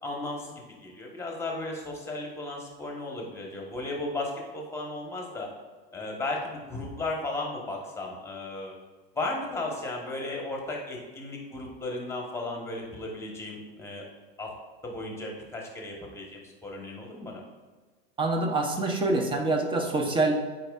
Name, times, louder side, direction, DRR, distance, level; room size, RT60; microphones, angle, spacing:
voice 1, 0.0-5.5 5.9-8.7 9.1-14.0 14.4-14.5 14.8-17.4, left 2 dB, 10° left, 0 dB, 1.2 m, -35 dB
voice 2, 18.2-20.3, right 2 dB, 15° right, 3 dB, 0.8 m, -25 dB
8.8 x 4.5 x 2.4 m, 1.4 s
supercardioid pair, 130°, 33 cm